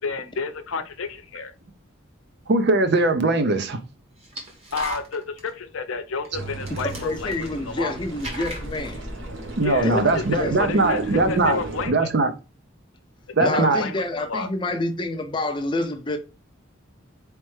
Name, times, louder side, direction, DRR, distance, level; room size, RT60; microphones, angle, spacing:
voice 1, 0.0-1.5 4.7-7.9 9.6-10.2 10.6-12.1 13.4-14.5, left 4 dB, 85° left, 0.6 m, -31 dB
voice 2, 2.5-3.8 9.6-11.6 11.9-12.3 13.3-13.8, right 2 dB, 55° right, 0.6 m, -20 dB
sound 1, 3.0-3.1 4.2-5.5 6.2-6.3 6.5-7.8 8.1-9.0, right 1 dB, 30° right, 1.1 m, -36 dB
sound 2, 6.3-11.9, right 2 dB, 70° right, 1.1 m, -34 dB
voice 3, 6.8-9.1 9.8-10.8 13.4-16.2, left 2 dB, 25° left, 0.5 m, -28 dB
4.2 x 3.3 x 3.2 m
head